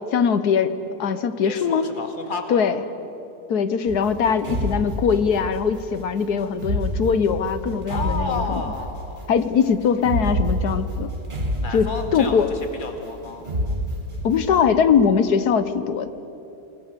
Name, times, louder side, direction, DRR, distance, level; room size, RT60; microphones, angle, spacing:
voice 1, 0.1-0.7 1.0-1.9 2.5-2.8 3.5-8.6 9.3-11.1 11.7-12.5 14.2-16.1, left 6 dB, 75° left, 12 dB, 1.5 m, -21 dB
voice 2, 1.4-2.6 7.9-9.3 11.6-13.5, left 3 dB, 30° left, 4 dB, 2.0 m, -31 dB
sound 1, 3.9-5.6 6.5-9.1 10.0-12.6 13.4-14.6, equal, 30° right, 2.0 m, -27 dB
28.0 x 19.0 x 6.8 m, 2.9 s
omnidirectional pair, 1.7 m